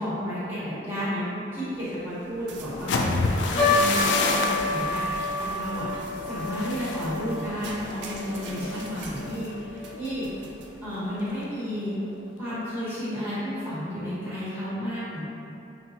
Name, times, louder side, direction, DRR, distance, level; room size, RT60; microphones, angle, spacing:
voice 1, 0.0-2.9 3.3-10.3 10.8-12.0 12.4-15.2, equal, 10° right, -13 dB, 1.3 m, -32 dB
sound 1, 1.5-11.5, right 3 dB, 80° right, 0.4 m, -46 dB
sound 2, 2.7-10.6 10.9-11.3 11.6-12.0, left 3 dB, 85° left, 0.4 m, -30 dB
sound 3, 3.6-10.1 10.3-10.4 11.2-11.5 12.1-12.2 12.5-12.7, left 2 dB, 45° left, 1.0 m, -29 dB
5.3 x 3.0 x 2.8 m, 2.7 s
head